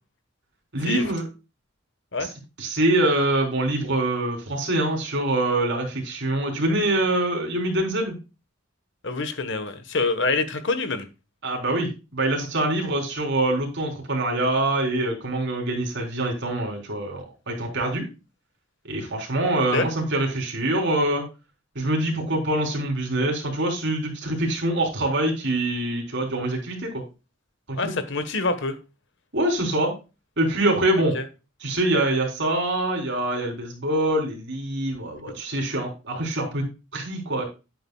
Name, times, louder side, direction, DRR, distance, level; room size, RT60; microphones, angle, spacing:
voice 1, 0.7-1.3 2.2-2.3 2.6-8.1 11.4-18.1 18.8-21.2 21.8-27.0 27.7-27.9 29.3-29.9 30.4-31.1 31.6-36.7 36.9-37.4, right 1 dB, 60° right, 3.8 m, -24 dB
voice 2, 9.0-11.1 19.7-19.8 27.8-28.8 31.1-31.2, left 3 dB, 65° left, 1.3 m, -26 dB
10.5 x 8.8 x 2.3 m
head